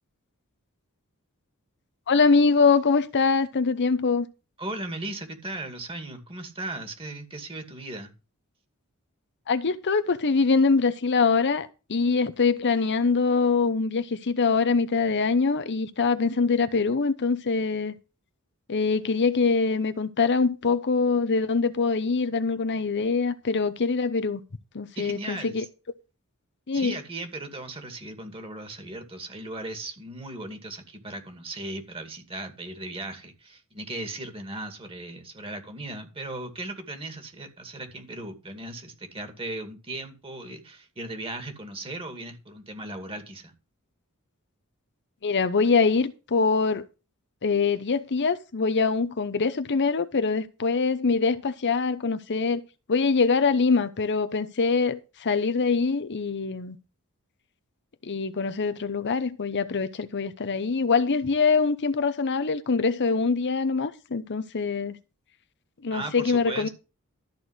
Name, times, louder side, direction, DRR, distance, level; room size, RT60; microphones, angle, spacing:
voice 1, 2.1-4.3 9.5-18.0 18.7-24.4 24.7-25.6 26.7-27.0 45.2-46.9 47.4-52.6 52.9-56.8 58.0-65.0 65.8-66.7, left 4 dB, 55° left, 0.8 m, -24 dB
voice 2, 4.6-8.1 25.0-25.7 26.7-43.5 65.9-66.7, right 2 dB, 25° right, 2.3 m, -37 dB
13.0 x 4.6 x 8.0 m
head